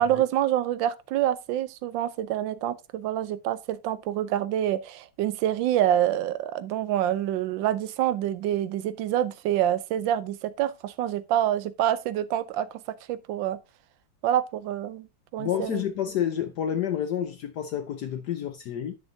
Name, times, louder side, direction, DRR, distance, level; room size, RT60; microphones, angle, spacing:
voice 1, 0.0-12.7 13.1-13.6 14.2-15.1 15.3-15.8, right 11 dB, 75° right, 1.2 m, -26 dB
voice 2, 15.4-19.0, left 9 dB, 70° left, 0.9 m, -29 dB
9.7 x 7.3 x 2.6 m
omnidirectional pair, 2.4 m